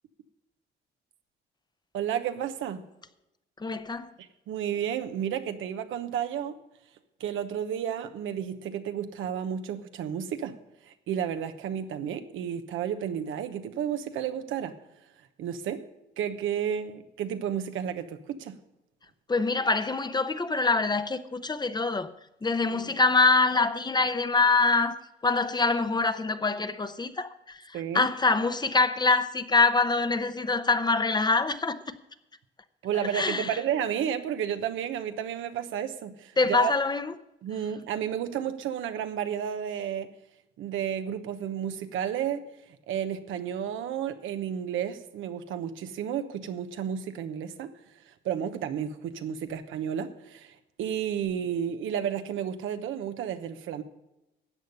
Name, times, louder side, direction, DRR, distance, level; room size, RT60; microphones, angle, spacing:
voice 1, 1.9-2.8 4.2-6.6 7.2-10.6 10.8-14.7 15.4-15.9 16.2-18.6 22.7-23.0 27.7-28.1 32.8-36.7 37.4-40.1 40.6-47.7 48.0-53.8, right 9 dB, 85° right, 1.0 m, -32 dB
voice 2, 3.6-4.1 19.3-22.1 22.4-32.0 33.1-33.6 36.4-37.1, left 3 dB, 20° left, 0.8 m, -25 dB
13.5 x 8.1 x 5.4 m
cardioid pair, 90°, 20 cm